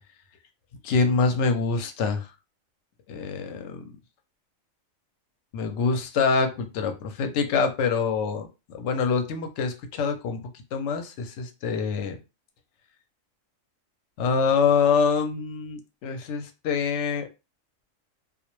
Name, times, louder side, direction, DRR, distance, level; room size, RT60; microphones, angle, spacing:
voice 1, 0.8-2.3 3.1-3.9 5.5-10.4 10.7-12.2 14.2-17.3, left 5 dB, 65° left, 6 dB, 0.8 m, -25 dB
2.3 x 2.1 x 2.9 m, 0.28 s
omnidirectional pair, 1.4 m